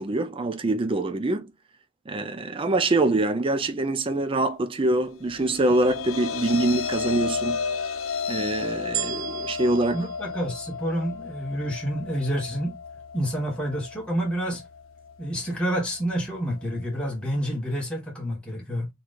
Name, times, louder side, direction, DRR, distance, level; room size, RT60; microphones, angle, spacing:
voice 1, 0.0-1.5 2.1-7.6 8.3-10.1, right 2 dB, 25° right, 0.4 m, -24 dB
sound 1, 5.1-17.5, left 5 dB, 70° left, 0.7 m, -34 dB
sound 2, 8.9-11.3 12.0-12.1, right 12 dB, 80° right, 0.8 m, -35 dB
voice 2, 9.9-12.7 13.1-14.6 15.2-18.9, equal, 5° left, 1.2 m, -28 dB
4.6 x 3.7 x 2.4 m
head